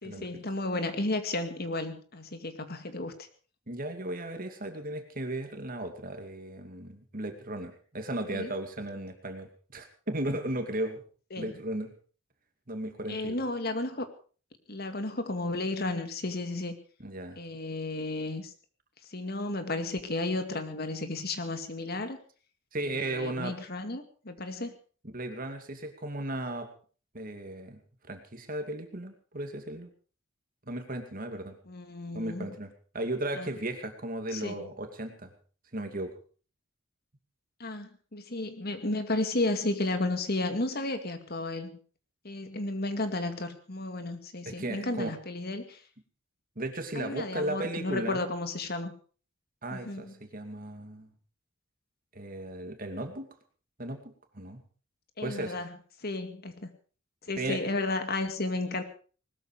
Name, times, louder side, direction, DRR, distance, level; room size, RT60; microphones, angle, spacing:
voice 1, 0.0-3.1 8.3-8.5 11.3-11.5 13.1-14.1 14.7-16.8 17.4-18.5 19.1-22.2 22.8-24.8 31.7-32.5 33.4-33.5 34.3-34.6 37.6-41.8 42.2-45.8 47.0-48.9 49.7-50.1 55.2-56.7 57.2-58.8, left 2 dB, 55° left, 8 dB, 2.3 m, -33 dB
voice 2, 3.7-11.0 11.4-11.9 12.7-13.4 17.0-17.4 22.7-23.5 25.1-26.7 27.1-27.8 28.1-29.9 30.7-31.6 32.1-32.7 32.9-35.3 35.7-36.1 44.5-45.1 46.6-48.2 49.6-51.1 52.1-53.3 53.8-54.6 55.2-55.6 57.4-57.6, right 1 dB, 45° right, 6 dB, 2.5 m, -35 dB
20.0 x 13.5 x 5.0 m, 0.40 s
head